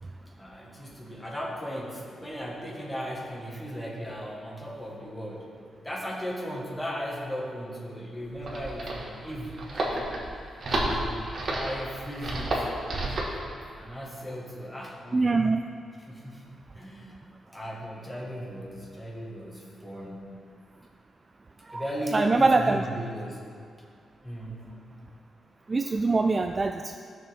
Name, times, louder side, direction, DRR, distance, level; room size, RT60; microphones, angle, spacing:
voice 1, 0.0-5.5 5.8-9.6 10.7-12.7 13.8-15.5 16.1-16.5 16.7-17.2 17.5-20.3 21.7-23.4 24.2-24.7, equal, 10° left, -3 dB, 1.6 m, -37 dB
sound 1, 8.2-13.4, right 1 dB, 45° right, 1.7 m, -31 dB
voice 2, 15.1-15.6 21.7-21.8 22.1-22.8 25.7-27.0, right 3 dB, 25° right, 5 dB, 0.3 m, -23 dB
14.5 x 6.5 x 3.6 m, 2.2 s
wide cardioid pair, 135°, 0 cm